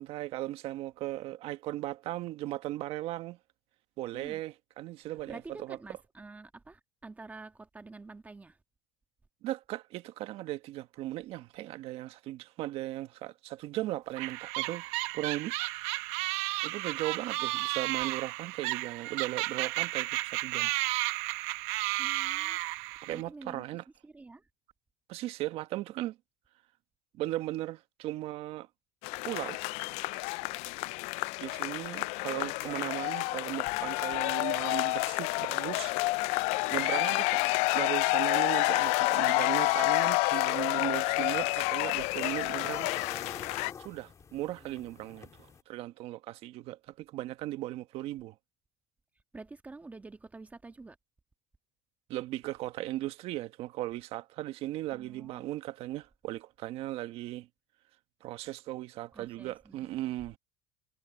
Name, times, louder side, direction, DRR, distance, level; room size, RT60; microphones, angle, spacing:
voice 1, 0.0-3.4 4.0-5.4 5.7-5.8 9.4-14.8 15.1-15.6 16.6-20.7 23.0-23.8 25.1-26.2 27.2-28.7 29.2-29.6 31.4-35.9 36.7-37.4 37.7-42.9 43.8-45.3 45.7-48.3 52.1-57.5 58.2-60.4, right 15 dB, 65° right, 1.5 m, -37 dB
voice 2, 5.3-8.6 17.6-17.8 22.0-22.7 23.1-23.7 24.0-24.5 44.6-44.9 49.3-51.0 54.9-55.5 59.1-60.1, right 3 dB, 15° right, 1.5 m, -48 dB
sound 1, 14.2-23.2, right 20 dB, 80° right, 0.9 m, -33 dB
sound 2, 29.0-43.7, left 24 dB, 75° left, 0.4 m, -29 dB
sound 3, 40.6-45.6, left 6 dB, 30° left, 3.1 m, -47 dB
cardioid pair, 120°, 11 cm